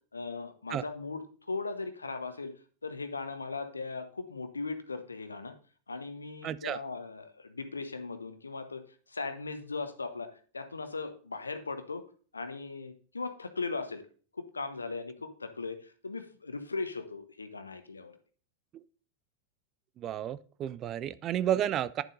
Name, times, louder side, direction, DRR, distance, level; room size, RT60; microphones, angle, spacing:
voice 1, 0.1-2.5 2.8-5.5 5.9-10.3 10.5-12.0 12.3-14.0 14.3-18.2, left 4 dB, 75° left, 9 dB, 0.9 m, -38 dB
voice 2, 6.4-6.8 18.7-18.8 20.0-22.0, right 11 dB, 30° right, 16 dB, 0.4 m, -32 dB
11.0 x 7.3 x 2.7 m, 0.41 s
figure-of-eight pair, 90°, 0 cm